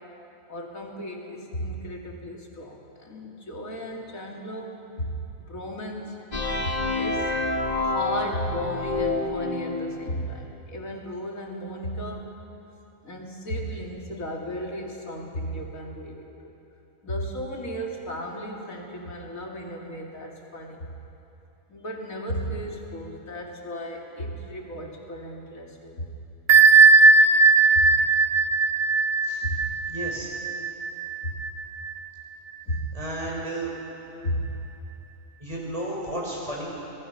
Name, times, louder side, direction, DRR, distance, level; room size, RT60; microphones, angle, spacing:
voice 1, 0.5-6.2 6.6-7.3 7.8-12.3 13.0-16.5 17.0-20.9 21.7-26.0 27.7-28.0 29.4-29.7 31.2-31.3 32.7-32.9 34.2-34.5, equal, 70° left, 0 dB, 3.0 m, -34 dB
sound 1, 6.3-10.1, left 2 dB, 35° left, 1.2 m, -27 dB
Bell, 26.5-31.9, right 4 dB, 55° right, 0.9 m, -18 dB
voice 2, 29.9-30.3 32.9-33.7 35.4-36.7, right 1 dB, 25° right, -4 dB, 5.6 m, -32 dB
26.0 x 19.5 x 5.8 m, 2.9 s
omnidirectional pair, 1.5 m